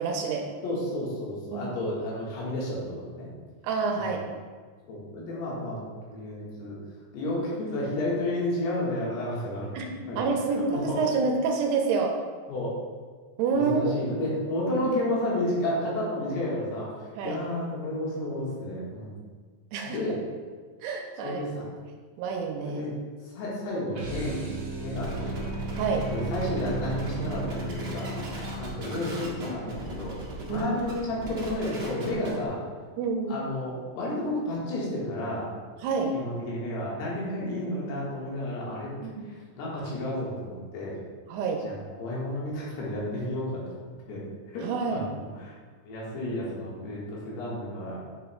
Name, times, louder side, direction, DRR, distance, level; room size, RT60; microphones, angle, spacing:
voice 1, 0.0-0.5 1.5-1.7 3.6-4.2 9.8-9.9 10.2-12.2 13.4-13.9 17.2-17.4 19.7-20.0 20.8-21.4 22.2-22.9 25.7-26.1 30.5-30.7 33.0-33.4 35.8-36.1 39.0-39.3 41.3-41.7 44.6-45.0, right 4 dB, 85° right, 2 dB, 2.7 m, -28 dB
voice 2, 0.6-3.3 3.9-4.2 4.9-5.8 6.1-6.8 7.1-10.2 10.5-11.0 12.5-12.8 13.5-19.2 19.9-20.2 21.2-21.6 22.7-22.9 23.3-24.4 24.8-25.5 26.1-28.1 28.6-30.1 30.5-32.6 33.3-35.5 36.1-38.9 39.2-41.0 41.7-43.6 44.1-44.2 44.5-45.1 45.4-45.5 45.9-48.0, left 1 dB, 75° left, -6 dB, 3.5 m, -31 dB
sound 1, 23.9-30.4, right 2 dB, 60° right, 1.9 m, -36 dB
sound 2, 24.9-32.5, right 1 dB, 40° right, 2.1 m, -38 dB
8.6 x 6.5 x 2.3 m, 1.5 s
omnidirectional pair, 4.9 m